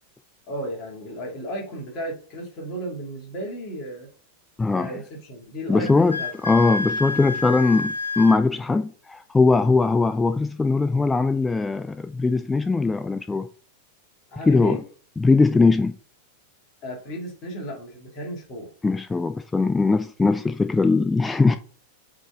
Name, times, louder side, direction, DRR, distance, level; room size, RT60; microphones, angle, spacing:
voice 1, 0.5-4.1 4.7-6.3 14.3-14.8 16.8-18.7, equal, 35° left, 2.7 m, -34 dB
voice 2, 4.6-4.9 5.7-13.5 14.5-14.8 15.2-16.0 18.8-21.6, left 3 dB, 10° left, 0.4 m, -20 dB
Wind instrument woodwind instrument, 5.8-8.4, left 3 dB, 80° left, 1.6 m, -29 dB
7.9 x 3.9 x 3.9 m
figure-of-eight pair, 90°, 0 cm